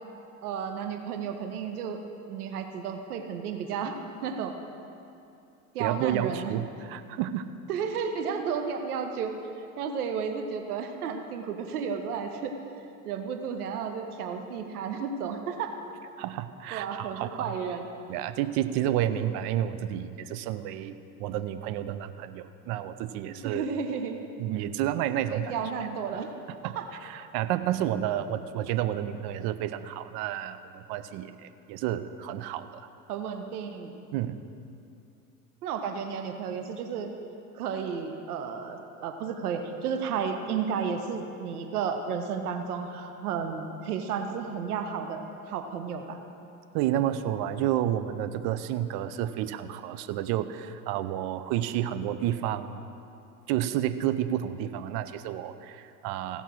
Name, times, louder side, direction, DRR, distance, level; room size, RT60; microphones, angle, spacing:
voice 1, 0.4-2.0 2.3-4.0 4.2-4.5 5.7-6.5 7.7-9.3 9.8-12.5 13.0-15.7 16.7-17.9 19.1-19.2 23.3-24.2 25.3-26.3 26.7-26.8 33.1-34.0 35.6-37.1 37.5-46.2, right 6 dB, 80° right, 6 dB, 1.0 m, -32 dB
voice 2, 5.8-7.4 16.2-17.6 18.1-23.7 24.4-25.5 26.6-26.8 27.0-32.8 34.1-34.4 46.7-52.9 53.5-56.4, right 11 dB, 55° right, 11 dB, 0.7 m, -30 dB
16.0 x 5.5 x 6.2 m, 2.6 s
hypercardioid pair, 80°, 44 cm